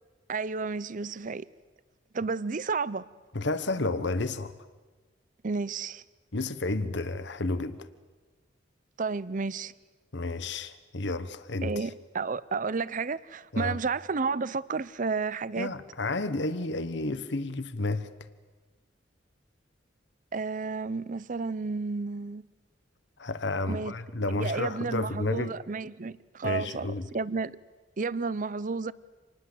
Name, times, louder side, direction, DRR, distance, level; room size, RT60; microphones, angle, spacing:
voice 1, 0.3-1.5 2.1-3.0 5.4-6.0 9.0-9.7 11.6-15.7 20.3-22.4 23.7-24.0 24.3-26.9 27.1-27.6 28.0-28.9, right 4 dB, 45° right, 0.7 m, -31 dB
voice 2, 3.3-4.5 6.3-7.8 10.1-11.8 13.5-13.8 15.6-18.1 23.2-25.5 26.4-27.1, left 2 dB, 65° left, 1.2 m, -31 dB
27.0 x 20.0 x 7.9 m
head